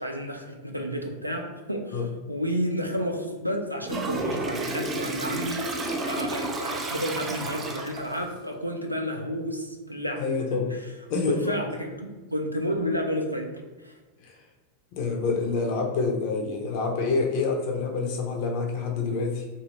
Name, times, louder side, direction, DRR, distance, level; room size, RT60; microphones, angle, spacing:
voice 1, 0.0-10.2 10.7-10.8 11.2-13.5 13.8-13.9, equal, 90° right, 2 dB, 0.4 m, -31 dB
Toilet flush, 3.8-8.2, right 2 dB, 20° right, 0.4 m, -31 dB
voice 2, 10.2-10.7 11.1-11.4 14.2-14.3 14.9-19.4, left 4 dB, 45° left, 1 dB, 0.6 m, -27 dB
2.8 x 2.7 x 3.0 m, 1.3 s
figure-of-eight pair, 90°, 0 cm